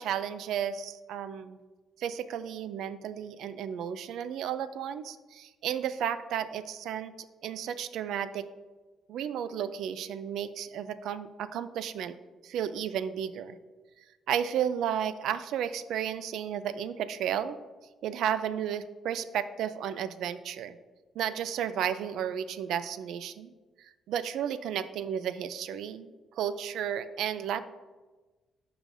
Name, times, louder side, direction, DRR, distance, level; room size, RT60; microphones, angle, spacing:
voice 1, 0.0-1.6 2.0-7.1 7.4-8.5 9.1-12.2 12.4-13.6 14.3-17.6 18.0-20.8 21.2-23.5 24.1-27.6, right 9 dB, 80° right, 13 dB, 0.4 m, -33 dB
12.5 x 4.9 x 2.6 m, 1.3 s
cardioid pair, 90°, 0 cm